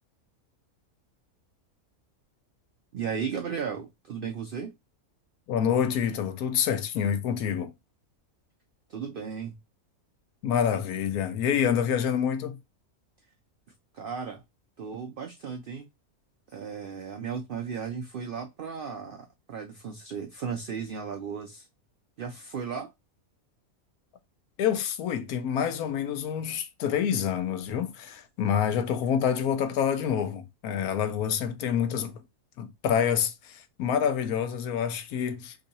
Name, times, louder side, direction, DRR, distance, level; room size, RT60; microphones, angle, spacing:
voice 1, 2.9-4.7 8.9-9.6 13.9-14.4 14.8-15.9 16.5-21.7 22.2-22.9, right 6 dB, 85° right, 0.4 m, -35 dB
voice 2, 5.5-7.7 10.4-12.6 24.6-32.2 32.6-35.6, left 8 dB, 90° left, 1.1 m, -27 dB
3.0 x 2.7 x 3.9 m
omnidirectional pair, 1.5 m